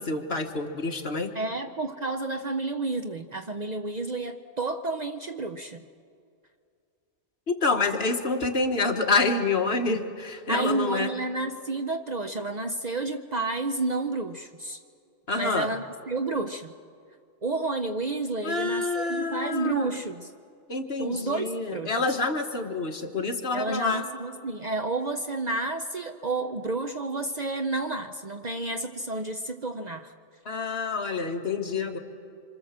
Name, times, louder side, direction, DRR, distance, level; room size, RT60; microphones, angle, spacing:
voice 1, 0.0-1.3 7.5-11.1 15.3-15.7 18.4-19.9 20.7-24.1 30.5-32.0, left 3 dB, 55° left, 4 dB, 1.8 m, -27 dB
voice 2, 1.3-5.8 10.5-14.8 15.4-16.7 17.4-20.3 21.0-22.0 23.5-30.1, right 2 dB, 40° right, 7 dB, 0.7 m, -30 dB
26.0 x 25.5 x 7.4 m, 2.4 s
omnidirectional pair, 1.2 m